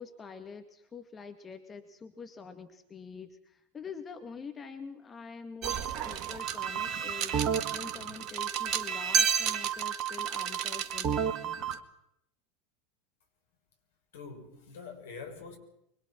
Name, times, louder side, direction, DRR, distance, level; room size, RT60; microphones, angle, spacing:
voice 1, 0.0-11.6, left 5 dB, 25° left, 2.2 m, -46 dB
sound 1, 5.6-11.8, right 8 dB, 45° right, 2.0 m, -31 dB
voice 2, 14.1-15.6, left 5 dB, 70° left, 6.1 m, -44 dB
25.5 x 23.5 x 6.2 m
figure-of-eight pair, 85°, 0 cm